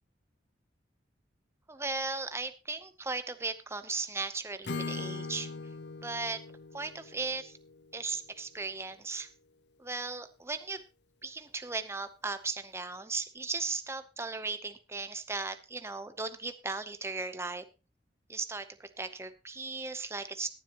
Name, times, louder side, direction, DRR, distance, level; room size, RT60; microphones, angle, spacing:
voice 1, 1.7-5.5 6.0-6.4 6.7-7.6 7.9-9.3 9.8-10.8 11.2-17.6 18.3-20.5, right 3 dB, 15° right, 10 dB, 0.7 m, -37 dB
Acoustic guitar / Strum, 4.6-8.6, left 3 dB, 70° left, 0.8 m, -41 dB
21.5 x 7.5 x 2.9 m, 0.31 s
head